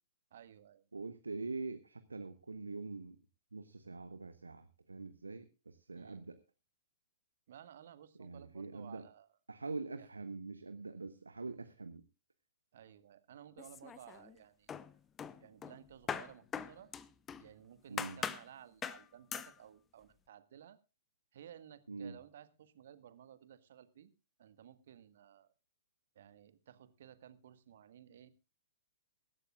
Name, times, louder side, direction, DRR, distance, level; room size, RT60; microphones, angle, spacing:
voice 1, 0.3-0.8 5.9-6.2 7.5-9.3 10.0-10.1 12.7-14.7 15.4-16.9 17.4-20.8 21.3-24.1 24.4-25.5 26.1-28.3, right 10 dB, 55° right, 13 dB, 1.6 m, -56 dB
voice 2, 0.9-3.2 3.5-6.4 8.2-9.0 9.5-12.0 17.9-18.2 21.9-22.2, right 3 dB, 75° right, 9 dB, 1.2 m, -44 dB
sound 1, 13.6-14.4 14.7-17.5 18.0-18.5 18.8-19.0 19.3-19.5, left 7 dB, 20° left, 0.8 m, -42 dB
23.5 x 12.5 x 2.4 m, 0.29 s
figure-of-eight pair, 110°, 0 cm